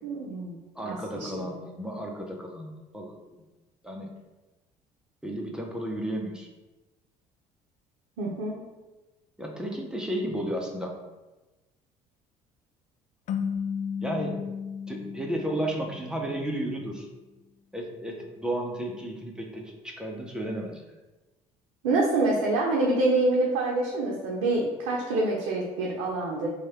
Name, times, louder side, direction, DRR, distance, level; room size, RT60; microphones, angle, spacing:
voice 1, 0.0-1.5 8.2-8.6 21.8-26.5, right 2 dB, 75° right, -3 dB, 0.7 m, -26 dB
voice 2, 0.7-3.1 3.8-4.1 5.2-6.5 9.4-10.9 14.0-14.4 14.9-17.1 17.7-20.9, right 1 dB, 5° right, 0 dB, 0.9 m, -33 dB
sound 1, 13.3-16.4, left 7 dB, 50° left, 0.4 m, -34 dB
3.1 x 2.4 x 4.3 m, 1.1 s
hypercardioid pair, 60°, 17 cm